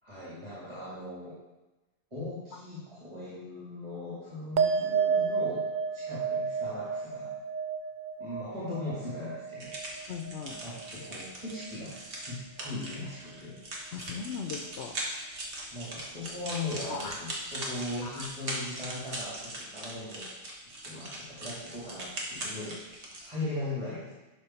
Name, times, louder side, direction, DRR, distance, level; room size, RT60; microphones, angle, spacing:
voice 1, 0.0-1.3 2.1-7.3 8.2-9.7 10.5-13.6 15.7-20.3 20.8-22.8 23.2-24.1, left 2 dB, 25° right, -10 dB, 2.4 m, -39 dB
sound 1, 4.6-11.3 11.5-12.2, right 6 dB, 55° right, 0.5 m, -32 dB
sound 2, 9.6-23.3, right 1 dB, 90° right, 1.8 m, -40 dB
voice 2, 10.1-10.6 13.9-14.9 16.8-17.2 18.0-18.3, left 6 dB, 80° left, 3 dB, 0.9 m, -38 dB
11.5 x 4.5 x 4.4 m, 1.1 s
omnidirectional pair, 1.1 m